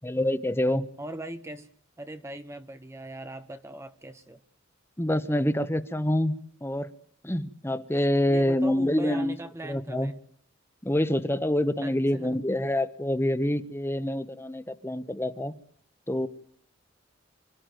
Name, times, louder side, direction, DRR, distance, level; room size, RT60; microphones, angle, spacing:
voice 1, 0.0-0.9 5.0-6.9 7.2-9.3 9.6-10.1 10.8-15.5 16.1-16.3, left 1 dB, 15° left, 12 dB, 1.1 m, -26 dB
voice 2, 1.0-1.7 2.0-4.4 8.3-10.2 11.8-12.3, right 1 dB, 15° right, 9 dB, 0.8 m, -40 dB
26.5 x 13.5 x 9.2 m, 0.62 s
head